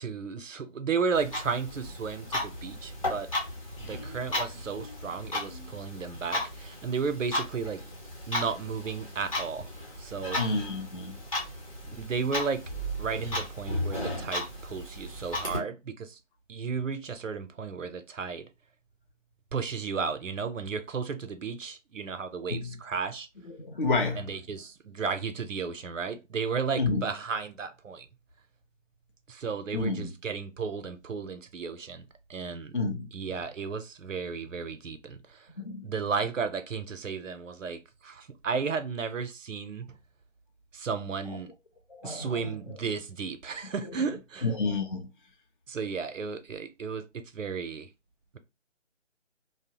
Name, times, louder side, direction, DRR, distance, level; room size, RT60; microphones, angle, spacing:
voice 1, 0.0-3.3 3.8-7.8 8.3-9.7 10.0-10.4 11.8-12.6 13.0-16.2 16.5-18.5 19.5-23.3 24.2-28.1 29.3-32.8 33.1-35.5 35.8-40.0 40.7-41.5 42.0-44.5 45.7-47.9, right 5 dB, 85° right, 0.6 m, -34 dB
Clock, 1.1-15.6, left 1 dB, 30° left, 0.8 m, -35 dB
voice 2, 10.4-11.2 22.5-22.8 23.4-24.4 26.8-27.0 29.7-30.1 32.7-33.4 35.6-35.9 41.3-41.4 41.9-42.6 44.4-45.1, left 3 dB, 45° left, 0.4 m, -30 dB
2.7 x 2.0 x 2.7 m
figure-of-eight pair, 155°, 37 cm